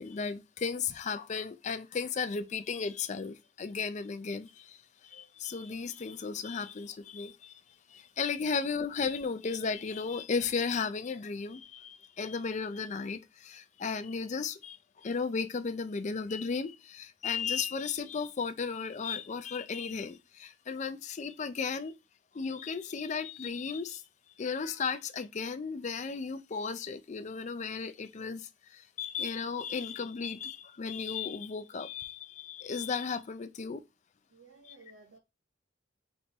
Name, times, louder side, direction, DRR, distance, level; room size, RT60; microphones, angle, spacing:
voice 1, 0.0-4.8 5.0-7.5 7.9-21.9 22.3-24.0 24.4-33.8, left 5 dB, 40° left, 0.4 m, -35 dB
voice 2, 34.3-35.2, right 3 dB, 80° right, 0.8 m, -56 dB
4.1 x 3.7 x 3.0 m
head